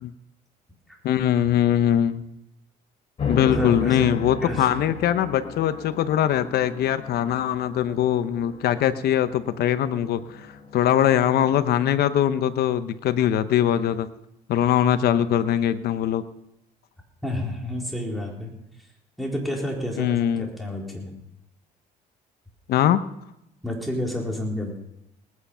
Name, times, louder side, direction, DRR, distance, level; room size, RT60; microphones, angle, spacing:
voice 1, 1.0-2.2 3.3-10.2 10.7-14.1 14.5-16.2 20.0-20.5 22.7-23.0, left 10 dB, 70° left, 12 dB, 0.9 m, -22 dB
sound 1, 3.2-11.6, left 5 dB, 35° left, 3.0 m, -35 dB
voice 2, 3.5-4.1 4.4-4.7 17.2-18.5 19.2-21.1 23.6-24.8, left 1 dB, ahead, -2 dB, 4.0 m, -30 dB
19.0 x 9.5 x 5.7 m, 0.85 s
cardioid pair, 110°, 17 cm